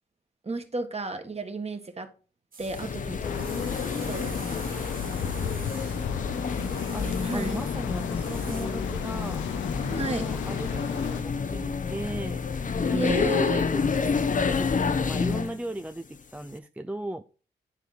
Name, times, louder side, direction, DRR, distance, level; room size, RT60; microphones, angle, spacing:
voice 1, 0.4-2.1 2.6-3.6 4.0-4.9 7.2-7.6 9.9-10.3 12.9-13.7, right 2 dB, 35° right, 1.6 m, -33 dB
sound 1, 2.5-2.9 3.3-7.8 8.1-8.7, right 5 dB, 50° right, 1.1 m, -46 dB
sound 2, 2.6-15.6, left 5 dB, 45° left, 0.8 m, -29 dB
sound 3, 3.2-11.2, left 8 dB, 90° left, 0.8 m, -35 dB
voice 2, 3.8-4.4 5.8-9.4 9.9-17.2, right 1 dB, 5° right, 0.5 m, -38 dB
9.9 x 4.5 x 4.1 m
supercardioid pair, 50°, 19 cm